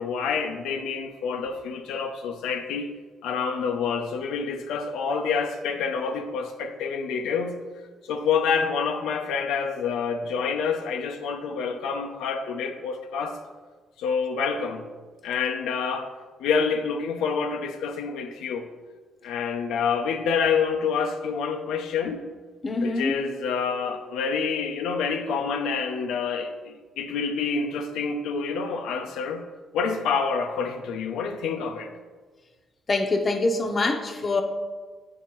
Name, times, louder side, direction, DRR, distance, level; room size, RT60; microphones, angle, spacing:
voice 1, 0.0-3.0 3.2-7.6 8.0-13.4 14.0-14.9 15.2-16.1 16.4-18.7 19.2-22.3 22.8-29.4 29.7-31.9, left 5 dB, 90° left, 0.4 m, -27 dB
voice 2, 22.6-23.1 32.9-34.4, left 3 dB, 35° left, 0.7 m, -24 dB
8.5 x 4.2 x 3.0 m
cardioid pair, 90°, 0 cm